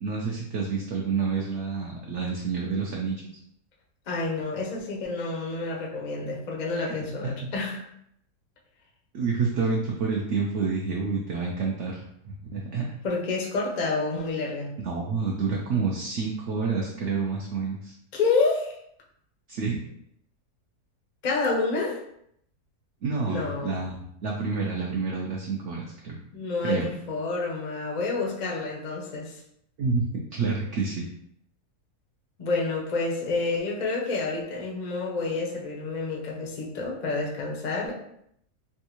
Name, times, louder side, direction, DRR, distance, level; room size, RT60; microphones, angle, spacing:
voice 1, 0.0-3.3 6.8-6.9 9.1-12.9 14.8-17.9 19.5-19.8 23.0-26.1 26.6-26.9 29.8-30.1 30.3-31.1, right 4 dB, 70° right, -1 dB, 0.7 m, -28 dB
voice 2, 4.1-7.8 13.0-14.7 18.1-18.8 21.2-22.0 23.3-23.8 26.3-29.4 32.4-37.9, left 3 dB, 65° left, -2 dB, 0.4 m, -29 dB
3.4 x 2.3 x 2.9 m, 0.73 s
omnidirectional pair, 1.7 m